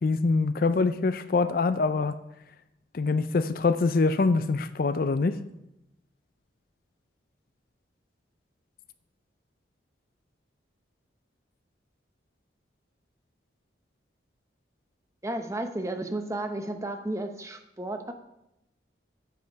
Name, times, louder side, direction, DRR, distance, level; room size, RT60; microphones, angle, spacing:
voice 1, 0.0-2.1 2.9-5.4, left 3 dB, 50° left, 13 dB, 0.4 m, -24 dB
voice 2, 15.2-18.1, right 1 dB, 15° right, 6 dB, 0.7 m, -33 dB
9.3 x 7.6 x 4.7 m, 0.86 s
head